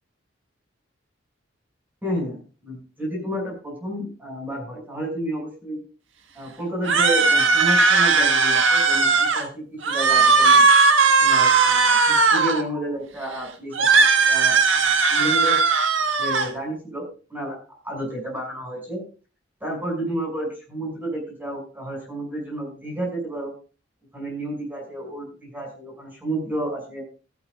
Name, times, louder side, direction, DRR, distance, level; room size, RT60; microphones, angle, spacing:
voice 1, 2.0-5.8 6.3-10.6 11.2-15.6 16.2-17.0 17.3-17.6 17.8-19.0 19.6-23.5 24.1-27.0, right 1 dB, 10° right, -1 dB, 6.2 m, -31 dB
sound 1, 6.8-9.5 9.8-12.6 13.7-16.5, right 4 dB, 75° right, 1.6 m, -17 dB
15.5 x 13.5 x 2.4 m, 0.35 s
head